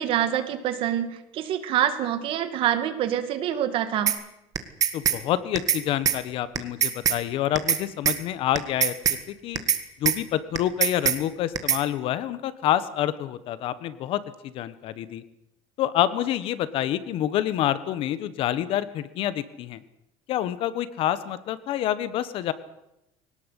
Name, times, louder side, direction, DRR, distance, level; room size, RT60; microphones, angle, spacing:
voice 1, 0.0-4.1, right 10 dB, 45° right, 10 dB, 2.2 m, -26 dB
sound 1, 4.1-4.2 4.5-5.2 5.5-5.8 6.0-6.2 6.5-7.2 7.5-7.8 8.0-8.2 8.5-9.2 9.5-9.8 10.0-10.2 10.5-11.2 11.5-11.8, right 9 dB, 30° right, 1.7 m, -22 dB
voice 2, 4.9-8.9 9.3-9.6 10.0-15.2 15.8-19.8 20.3-22.5, left 12 dB, 50° left, 15 dB, 1.3 m, -27 dB
21.5 x 18.5 x 8.3 m, 0.86 s
cardioid pair, 175°, 12 cm